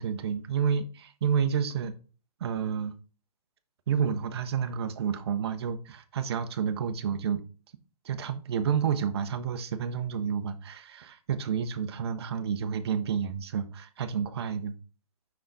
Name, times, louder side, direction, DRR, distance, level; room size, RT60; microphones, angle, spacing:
voice 1, 0.0-1.9 2.4-2.9 3.9-7.4 8.0-14.7, right 7 dB, 40° right, 0.8 m, -30 dB
5.6 x 5.5 x 3.9 m
hypercardioid pair, 160°, 20 cm